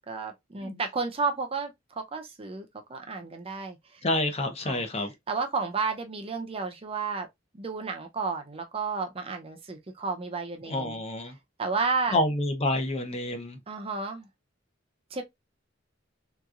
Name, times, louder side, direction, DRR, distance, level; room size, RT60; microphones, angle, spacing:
voice 1, 0.0-3.8 4.6-4.8 5.3-7.3 7.5-11.0 11.6-12.2 13.7-14.3 15.1-15.2, right 4 dB, 30° right, 0.6 m, -32 dB
voice 2, 4.0-5.1 10.7-11.3 12.1-13.6, left 1 dB, 35° left, 0.7 m, -28 dB
3.6 x 2.9 x 2.4 m
head